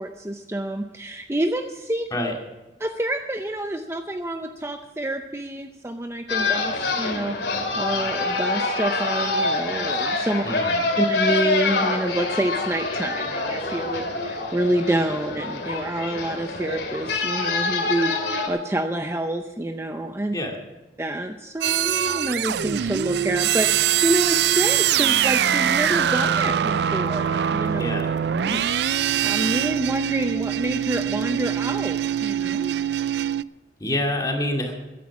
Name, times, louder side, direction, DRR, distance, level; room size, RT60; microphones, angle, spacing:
voice 1, 0.0-2.1 2.8-7.4 7.8-10.4 11.0-20.3 21.0-27.8 28.4-28.6 28.9-32.7, right 1 dB, 15° right, 6 dB, 0.6 m, -28 dB
sound 1, 6.3-18.5, left 3 dB, 65° left, 2.5 m, -26 dB
voice 2, 10.4-10.8 20.3-20.6 27.8-28.1 33.8-34.7, left 1 dB, 20° left, 1 dB, 2.3 m, -26 dB
sound 2, 21.6-33.4, right 10 dB, 65° right, 0.4 m, -23 dB
14.5 x 10.5 x 6.0 m, 1.1 s
head